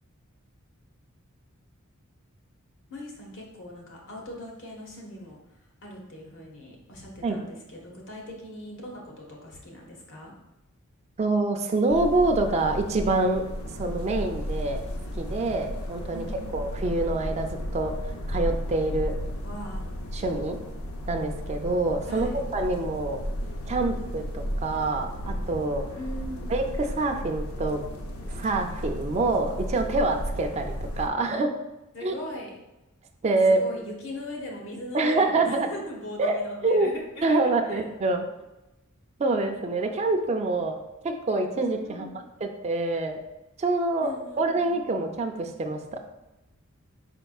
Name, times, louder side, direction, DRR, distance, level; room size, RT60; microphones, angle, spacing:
voice 1, 2.9-5.4 5.8-10.3 16.1-16.6 19.4-19.9 22.1-22.4 25.9-26.6 31.9-32.5 33.5-37.8 41.8-42.3 44.0-44.8, left 1 dB, 60° left, -1 dB, 1.1 m, -40 dB
voice 2, 11.2-13.4 13.7-14.8 15.2-16.2 16.5-17.5 17.7-17.9 18.3-19.1 20.1-20.6 21.1-23.2 23.7-25.8 26.5-27.8 28.3-31.5 32.0-32.1 33.2-33.6 34.9-35.7 36.2-36.9 37.2-38.2 39.2-40.8 41.0-43.2 43.6-45.8, right 2 dB, 30° right, 4 dB, 0.4 m, -26 dB
sound 1, 11.9-31.1, equal, 85° left, 0.6 m, -34 dB
5.0 x 4.4 x 2.3 m, 0.97 s
head